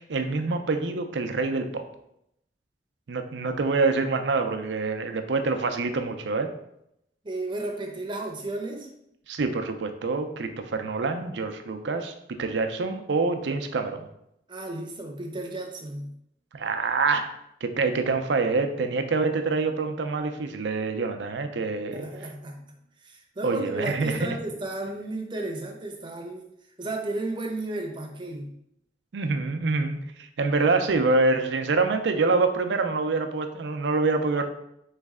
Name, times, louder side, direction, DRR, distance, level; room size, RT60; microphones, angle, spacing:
voice 1, 0.0-1.8 3.1-6.5 9.3-14.1 16.5-17.3 17.6-22.1 23.4-24.4 29.1-34.4, right 3 dB, 85° right, 6 dB, 0.5 m, -26 dB
voice 2, 7.2-8.9 14.5-16.1 21.9-22.6 23.0-26.5 26.8-28.5, right 2 dB, 25° right, 2 dB, 0.7 m, -33 dB
4.1 x 3.2 x 3.6 m, 0.78 s
head